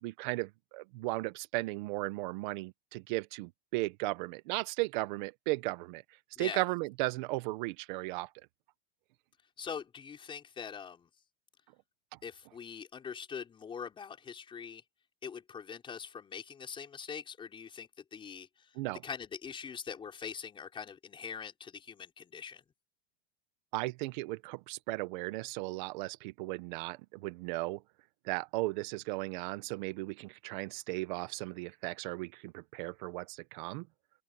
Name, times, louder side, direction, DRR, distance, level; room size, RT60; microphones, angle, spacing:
voice 1, 0.0-6.0 6.4-8.3 18.8-19.0 23.7-27.8 28.2-33.9, right 21 dB, 50° right, 1.0 m, -36 dB
voice 2, 9.6-11.1 12.2-14.8 15.2-18.5 19.0-22.6, left 7 dB, 15° left, 5.2 m, -43 dB
open air
supercardioid pair, 165°, 32 cm